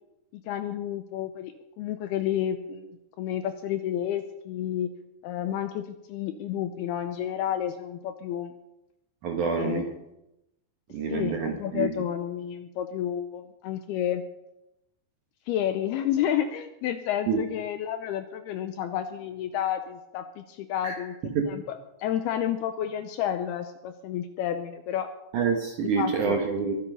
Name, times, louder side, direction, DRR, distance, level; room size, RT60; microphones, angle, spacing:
voice 1, 0.3-4.9 5.2-8.5 9.4-9.9 11.1-14.2 15.5-21.2 21.5-25.1 25.8-26.4, left 10 dB, 80° left, 8 dB, 2.4 m, -30 dB
voice 2, 9.2-9.9 10.9-11.9 17.3-17.4 20.8-21.0 21.4-21.5 25.3-26.8, right 5 dB, 65° right, 2 dB, 2.1 m, -27 dB
22.5 x 8.5 x 5.5 m, 0.89 s
omnidirectional pair, 5.2 m